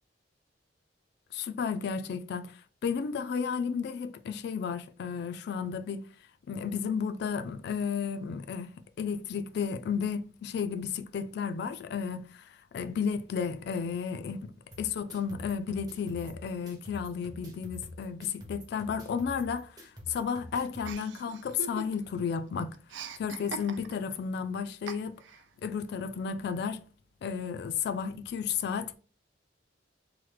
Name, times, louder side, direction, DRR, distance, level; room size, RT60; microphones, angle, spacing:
voice 1, 1.3-6.1 6.5-8.7 9.0-14.5 14.8-22.8 23.2-25.2 25.6-26.8 27.2-28.9, left 6 dB, 60° left, 0.3 m, -33 dB
sound 1, 14.7-20.9, equal, 20° right, 0.7 m, -47 dB
Chuckle chortle, 20.8-22.2 22.5-24.1 24.9-25.4, right 5 dB, 75° right, 0.3 m, -42 dB
3.1 x 2.1 x 3.1 m
head